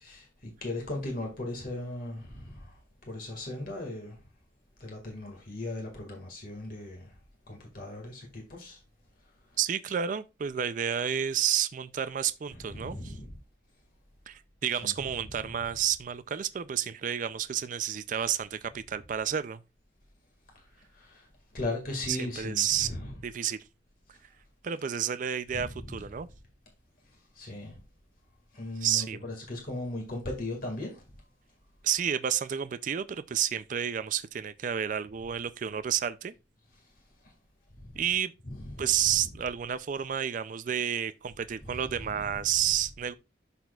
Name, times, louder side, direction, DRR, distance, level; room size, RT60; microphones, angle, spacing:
voice 1, 0.0-2.7 3.1-4.2 4.8-7.1 7.5-8.8 12.5-13.4 14.8-15.0 15.4-15.5 20.9-21.3 21.5-23.1 25.5-26.0 27.4-27.8 28.5-31.0 37.8-37.9 38.5-39.0 41.7-42.4, left 2 dB, 50° left, 1.9 m, -38 dB
voice 2, 9.6-13.1 14.3-19.6 22.1-22.9 23.2-23.6 24.6-26.3 28.8-29.2 31.8-36.3 38.0-38.3 38.8-43.1, right 9 dB, 45° right, 0.3 m, -30 dB
12.0 x 4.2 x 2.3 m
head